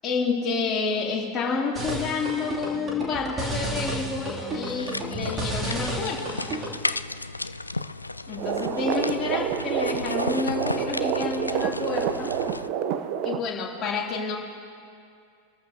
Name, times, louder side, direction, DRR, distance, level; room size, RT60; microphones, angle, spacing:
voice 1, 0.0-6.2 8.3-12.3 13.2-14.4, left 4 dB, 30° left, -2 dB, 2.9 m, -29 dB
sound 1, 1.7-6.8, right 1 dB, 20° right, 2.8 m, -32 dB
sound 2, 4.6-12.7, left 2 dB, 80° left, 0.3 m, -34 dB
sound 3, 8.4-13.4, right 9 dB, 45° right, 0.7 m, -28 dB
26.5 x 14.0 x 2.8 m, 2.2 s
figure-of-eight pair, 90°, 0 cm